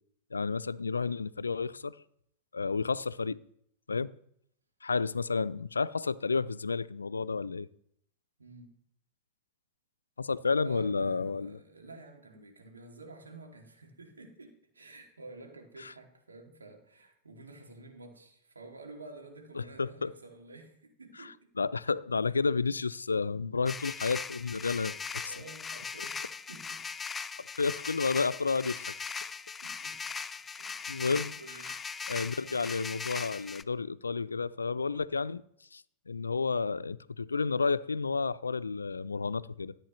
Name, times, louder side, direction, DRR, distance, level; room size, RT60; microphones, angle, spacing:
voice 1, 0.3-2.0 2.5-3.4 3.9-4.1 4.8-7.7 10.2-11.6 15.8-15.9 19.6-20.1 21.6-25.3 27.6-28.9 30.9-31.3 32.1-35.4 35.7-39.8, left 4 dB, 90° left, 0.3 m, -31 dB
voice 2, 8.4-8.7 10.6-21.5 24.7-26.8 29.6-30.0 30.6-31.8 32.4-32.7, right 3 dB, 90° right, 2.3 m, -51 dB
sound 1, 23.7-33.6, left 5 dB, 20° left, 0.5 m, -39 dB
14.0 x 8.1 x 3.1 m
hypercardioid pair, 95°, 0 cm